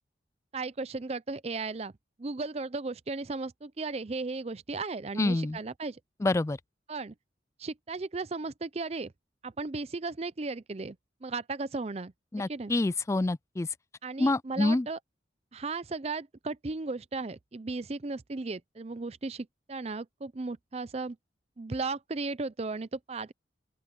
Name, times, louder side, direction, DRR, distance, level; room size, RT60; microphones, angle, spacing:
voice 1, 0.5-1.9 2.2-6.0 6.9-7.1 7.6-9.1 9.4-11.0 11.2-12.1 12.5-12.7 14.0-15.0 15.5-21.2 21.6-23.3, right 3 dB, 35° right, 0.5 m, -35 dB
voice 2, 5.2-5.6 6.2-6.6 12.3-13.7 14.2-14.9, left 2 dB, 15° left, 0.3 m, -27 dB
open air
head